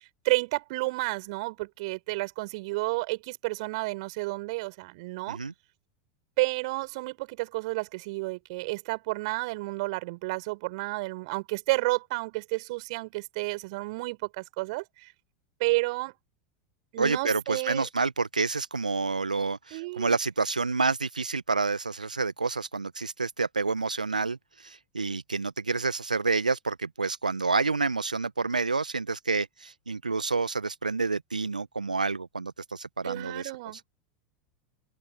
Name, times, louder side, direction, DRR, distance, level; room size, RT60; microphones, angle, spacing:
voice 1, 0.2-5.4 6.4-15.1 15.6-16.1 16.9-17.9 19.7-20.2 33.0-33.8, right 24 dB, 55° right, 6.1 m, -31 dB
voice 2, 17.0-33.5, right 4 dB, 85° right, 1.2 m, -29 dB
open air
figure-of-eight pair, 85°, 4 cm